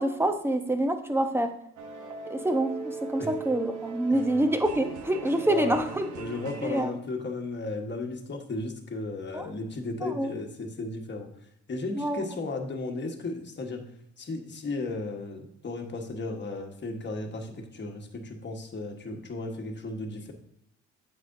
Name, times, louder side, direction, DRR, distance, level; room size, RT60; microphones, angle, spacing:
voice 1, 0.0-1.5 2.3-6.1 6.6-6.9 9.3-9.5 10.0-10.3 11.9-12.2, right 1 dB, 10° right, 7 dB, 0.8 m, -26 dB
sound 1, 1.8-6.8, right 5 dB, 75° right, 1.0 m, -40 dB
voice 2, 5.3-11.3 11.7-13.9 14.2-20.3, left 3 dB, 35° left, 3 dB, 1.4 m, -35 dB
8.3 x 6.6 x 2.7 m, 0.79 s
cardioid pair, 90°, 30 cm